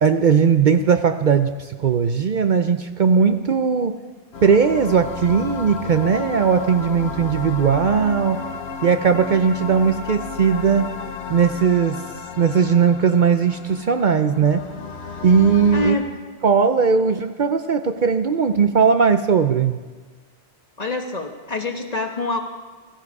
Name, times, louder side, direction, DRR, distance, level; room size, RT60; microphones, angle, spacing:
voice 1, 0.0-4.0 4.4-8.4 8.8-10.9 11.3-12.0 12.4-14.6 15.2-16.0 16.4-19.8, right 6 dB, 55° right, 8 dB, 0.7 m, -18 dB
sound 1, 4.3-15.9, left 4 dB, 75° left, 1.4 m, -33 dB
voice 2, 15.7-16.0 20.8-22.4, left 2 dB, 40° left, 4 dB, 1.3 m, -25 dB
15.5 x 15.5 x 4.8 m, 1.4 s
omnidirectional pair, 1.1 m